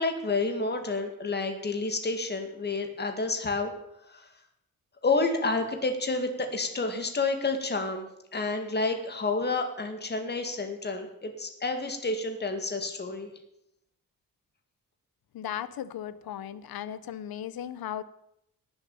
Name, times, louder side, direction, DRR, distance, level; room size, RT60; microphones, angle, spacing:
voice 1, 0.0-3.7 4.1-4.3 5.0-8.1 8.3-13.3, left 3 dB, 30° left, 6 dB, 2.1 m, -29 dB
voice 2, 15.3-18.0, left 10 dB, 90° left, 15 dB, 1.0 m, -36 dB
18.0 x 7.4 x 7.2 m, 0.81 s
wide cardioid pair, 170°, 35 cm